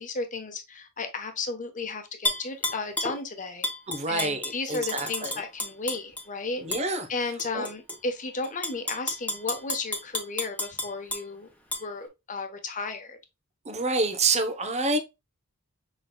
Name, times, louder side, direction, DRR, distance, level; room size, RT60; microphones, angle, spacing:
voice 1, 0.0-3.7 4.1-6.6 7.1-11.5 11.8-13.2, left 3 dB, 35° left, 1.0 m, -34 dB
Tap / Glass, 2.2-3.2 3.6-6.2 6.7-6.8 7.4-8.0 8.4-11.2 11.7-11.8, left 1 dB, 5° left, 1.1 m, -31 dB
voice 2, 3.9-5.4 6.6-7.1 7.5-7.7 13.6-15.0, right 3 dB, 30° right, 0.8 m, -27 dB
6.2 x 3.8 x 2.2 m
head